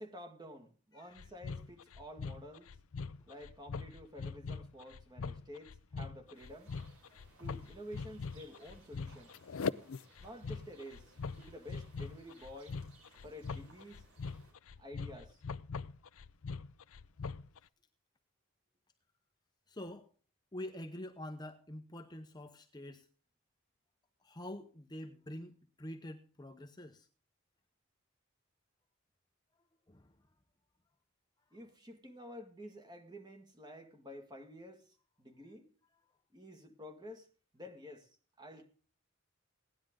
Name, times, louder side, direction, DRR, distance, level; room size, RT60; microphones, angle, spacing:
voice 1, 0.0-2.7 3.3-6.7 7.4-9.3 10.2-12.8 13.2-14.1 14.8-15.4 31.5-35.7 36.3-37.3 37.5-38.7, equal, 20° right, 1.8 m, -51 dB
sound 1, 1.2-17.6, left 5 dB, 80° left, 0.5 m, -42 dB
sound 2, 6.3-14.5, right 3 dB, 90° right, 5.6 m, -64 dB
voice 2, 19.7-20.1 20.5-23.1 24.2-27.1 29.9-30.2, left 1 dB, 20° left, 0.8 m, -46 dB
17.0 x 10.5 x 3.7 m
head